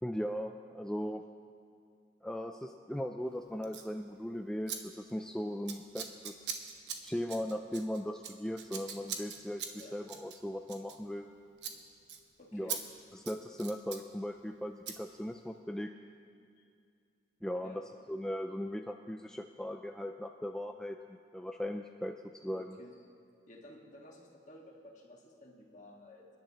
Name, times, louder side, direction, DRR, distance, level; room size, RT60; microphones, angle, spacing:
voice 1, 0.0-1.2 2.2-6.5 7.0-9.6 9.9-11.3 12.5-12.8 13.1-15.9 17.4-17.8 18.1-22.1 22.4-22.8, equal, 5° left, 3 dB, 0.3 m, -38 dB
Scissors, 3.6-3.9 4.7-4.8 5.0-5.3 5.7-11.3 11.6-11.8 12.1-12.2 12.7-12.8 13.1-14.0 14.9-15.0, right 7 dB, 75° right, 1.1 m, -42 dB
voice 2, 12.4-12.8 16.6-16.7 17.6-17.8 22.5-22.9 23.2-26.3, left 1 dB, 45° left, 0 dB, 1.7 m, -54 dB
28.0 x 10.5 x 3.0 m, 2.3 s
head